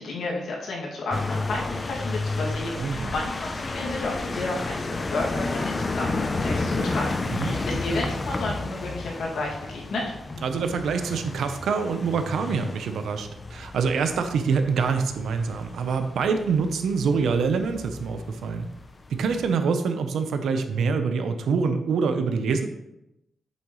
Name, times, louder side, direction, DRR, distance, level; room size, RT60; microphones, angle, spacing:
voice 1, 0.0-10.1, left 2 dB, 75° left, -3 dB, 2.3 m, -32 dB
sound 1, 1.1-19.5, left 3 dB, 25° left, 0.6 m, -32 dB
voice 2, 2.8-3.1 7.3-7.6 10.4-18.7 19.1-22.7, right 5 dB, 85° right, 7 dB, 0.8 m, -25 dB
8.4 x 7.0 x 3.2 m, 0.87 s
wide cardioid pair, 130°, 0 cm